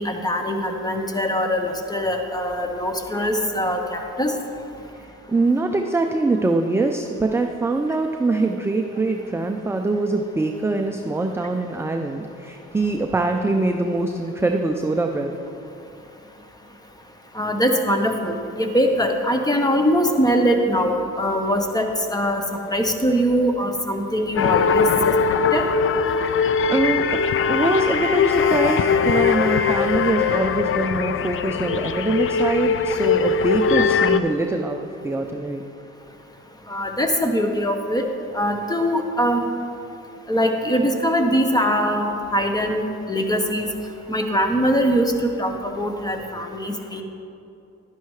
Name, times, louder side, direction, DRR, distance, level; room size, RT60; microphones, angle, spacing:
voice 1, 0.0-4.3 17.3-25.1 25.5-25.6 36.7-38.0 38.3-39.4 40.3-43.7 44.1-47.0, equal, 15° left, 4 dB, 1.0 m, -22 dB
voice 2, 5.0-15.3 26.4-34.8 35.0-35.6, right 2 dB, 10° right, 3 dB, 0.5 m, -23 dB
sound 1, 24.4-34.2, left 5 dB, 45° left, 0.4 m, -20 dB
11.5 x 10.0 x 3.2 m, 2.8 s
cardioid pair, 90°, 30 cm